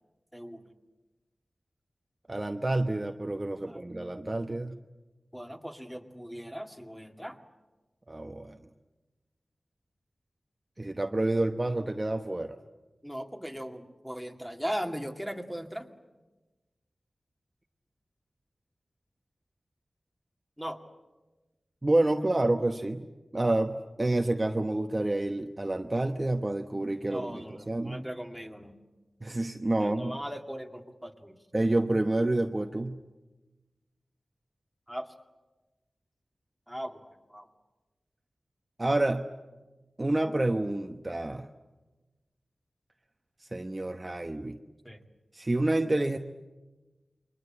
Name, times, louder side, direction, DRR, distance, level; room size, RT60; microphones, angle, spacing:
voice 1, 0.3-0.6 3.6-3.8 5.3-7.4 13.0-15.9 20.6-20.8 27.1-28.8 29.8-31.4 34.9-35.1 36.7-37.5 44.8-45.0, equal, ahead, 4 dB, 2.3 m, -38 dB
voice 2, 2.3-4.8 8.1-8.6 10.8-12.6 21.8-23.1 23.3-28.0 29.2-30.2 31.5-33.0 38.8-39.3 40.0-41.5 43.4-44.6 45.3-46.2, right 2 dB, 25° right, 5 dB, 1.0 m, -28 dB
29.0 x 23.0 x 8.8 m, 1.2 s
wide cardioid pair, 80°, 0 cm